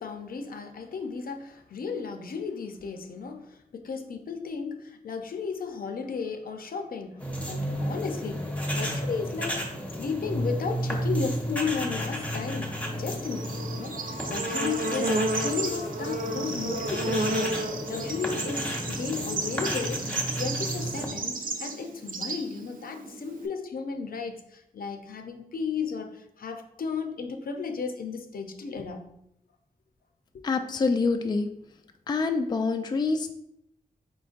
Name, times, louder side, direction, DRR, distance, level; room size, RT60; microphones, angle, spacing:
voice 1, 0.0-8.5 8.7-9.7 9.9-15.2 15.4-29.1 30.3-30.4, left 5 dB, 70° left, 6 dB, 0.6 m, -34 dB
sound 1, 7.2-21.1, equal, 10° left, 1.0 m, -33 dB
Bird / Insect, 12.9-23.5, right 2 dB, 65° right, 0.6 m, -32 dB
voice 2, 30.4-31.5 32.1-33.3, left 4 dB, 30° left, 6 dB, 0.3 m, -26 dB
4.5 x 3.8 x 2.5 m, 0.76 s
wide cardioid pair, 85°, 15 cm